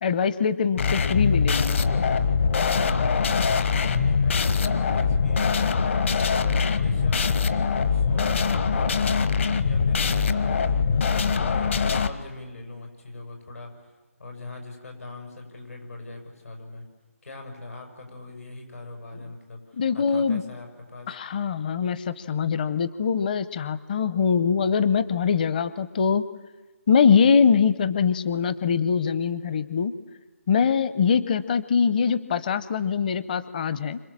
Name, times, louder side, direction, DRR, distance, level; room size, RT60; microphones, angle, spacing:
voice 1, 0.0-1.8 19.8-20.4 21.1-26.2 26.9-29.9 30.5-34.0, left 6 dB, 35° left, 15 dB, 0.8 m, -23 dB
sound 1, 0.8-12.1, left 5 dB, 55° left, 1.3 m, -23 dB
voice 2, 3.5-6.0 6.2-11.1 11.3-13.9 14.2-16.8 17.2-21.1, left 2 dB, 85° left, 2 dB, 7.6 m, -41 dB
29.0 x 26.5 x 7.5 m, 1.3 s
figure-of-eight pair, 160°, 8 cm